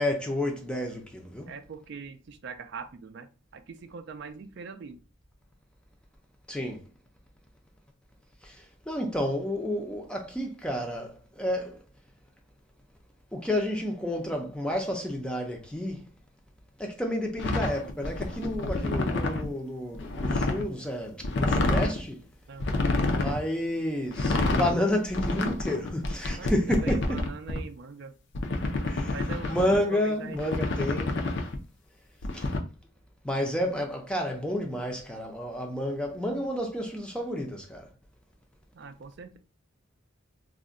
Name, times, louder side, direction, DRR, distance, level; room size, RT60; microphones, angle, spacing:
voice 1, 0.0-1.5 6.5-6.8 8.4-11.8 13.3-16.0 16.8-22.2 23.1-27.2 28.8-29.1 29.4-31.2 32.3-32.5 33.2-37.9, left 1 dB, 5° left, 0.4 m, -30 dB
voice 2, 1.5-5.0 22.5-22.9 26.4-28.1 29.1-30.9 38.7-39.4, right 5 dB, 55° right, 0.3 m, -42 dB
sound 1, 17.4-19.5 19.9-20.6 21.2-22.0 22.6-23.4 24.1-24.7 25.1-27.6 28.3-29.7 30.3-31.6 32.2-32.6, left 2 dB, 60° left, 0.5 m, -28 dB
2.4 x 2.1 x 3.6 m
head